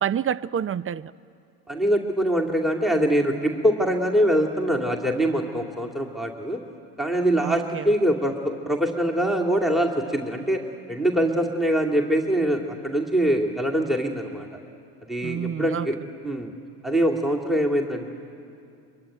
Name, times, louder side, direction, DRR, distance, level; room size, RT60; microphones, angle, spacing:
voice 1, 0.0-1.1 7.4-7.9 15.2-15.9, right 8 dB, 30° right, 0.6 m, -28 dB
voice 2, 1.7-6.6 7.0-10.6 10.9-14.5 15.1-16.0 16.2-16.5 16.8-18.1, equal, ahead, 2.6 m, -23 dB
23.5 x 23.0 x 9.2 m
hypercardioid pair, 60°, 45 cm